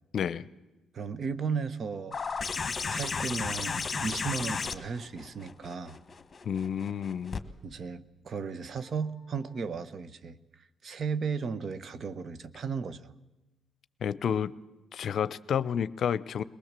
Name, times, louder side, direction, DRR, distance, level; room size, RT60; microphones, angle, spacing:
voice 1, 0.1-0.5 6.5-7.4 14.0-14.5 14.9-16.4, left 8 dB, 60° left, 17 dB, 0.7 m, -30 dB
voice 2, 0.9-2.2 2.9-6.0 7.6-10.4 10.8-13.1, right 5 dB, 50° right, 14 dB, 1.1 m, -35 dB
sound 1, 2.1-7.4 8.8-8.9, left 5 dB, 35° left, 1.5 m, -34 dB
22.0 x 19.5 x 7.5 m, 1.1 s
cardioid pair, 90°, 0 cm